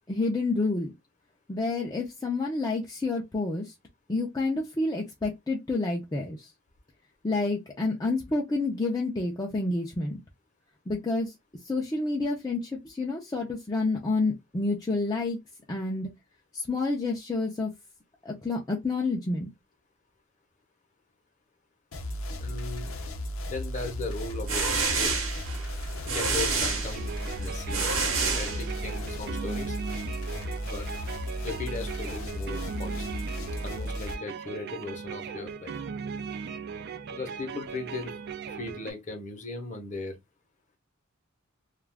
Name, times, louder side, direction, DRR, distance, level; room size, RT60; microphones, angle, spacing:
voice 1, 0.1-0.9 1.5-3.7 4.1-6.5 7.2-10.2 10.9-11.3 11.7-15.4 15.7-16.1 16.5-17.7 18.2-19.5, left 3 dB, 20° left, 0.5 m, -29 dB
sound 1, 21.9-34.2, equal, 85° left, 0.6 m, -35 dB
voice 2, 22.4-22.9 23.5-24.6 25.0-25.3 26.1-27.9 28.3-29.8 30.6-30.9 31.4-33.0 33.6-35.7 37.1-38.1 38.6-40.2, left 3 dB, 35° left, 0.8 m, -37 dB
sound 2, 24.2-29.1, right 4 dB, 70° right, 1.0 m, -29 dB
sound 3, 26.9-38.9, right 6 dB, 50° right, 0.4 m, -38 dB
2.4 x 2.3 x 3.3 m
head